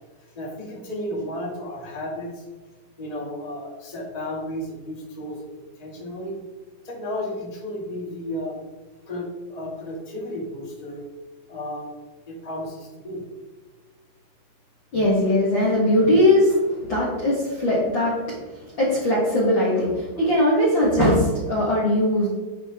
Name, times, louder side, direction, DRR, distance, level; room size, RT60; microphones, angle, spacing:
voice 1, 0.2-2.4 3.0-5.4 5.8-6.3 6.8-8.6 9.0-11.0 11.5-11.9 12.2-13.2, left 1 dB, 20° left, -5 dB, 1.0 m, -33 dB
voice 2, 14.9-22.3, left 1 dB, 70° left, -6 dB, 1.1 m, -20 dB
10.5 x 6.3 x 3.6 m, 1.3 s
omnidirectional pair, 5.1 m